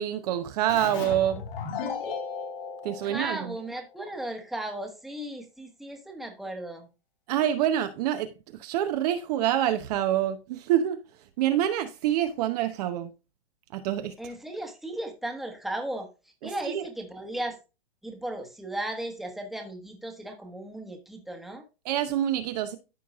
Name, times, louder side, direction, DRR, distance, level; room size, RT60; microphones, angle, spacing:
voice 1, 0.0-1.4 2.8-3.5 7.3-11.0 11.4-13.1 13.7-14.1 16.4-16.8 21.8-22.8, right 11 dB, 40° right, 0.8 m, -26 dB
Keyboard (musical), 0.7-4.1, left 6 dB, 65° left, 2.9 m, -36 dB
voice 2, 3.0-6.9 14.2-16.1 16.4-17.6 18.0-21.6, right 1 dB, ahead, 1.1 m, -36 dB
13.5 x 4.6 x 2.4 m
hypercardioid pair, 150°, 31 cm